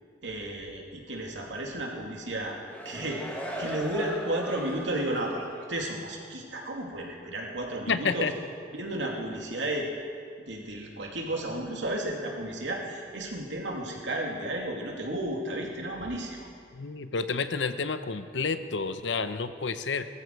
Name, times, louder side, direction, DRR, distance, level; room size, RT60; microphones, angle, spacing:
voice 1, 0.2-2.6 2.8-3.2 3.6-8.3 8.7-9.9 10.5-16.5, right 1 dB, 85° right, 0 dB, 2.7 m, -33 dB
sound 1, 2.4-5.2 5.6-5.7, equal, 10° left, 1.9 m, -38 dB
voice 2, 7.9-8.3 16.7-20.1, left 4 dB, 75° left, 11 dB, 0.8 m, -30 dB
20.0 x 14.0 x 4.7 m, 2.2 s
head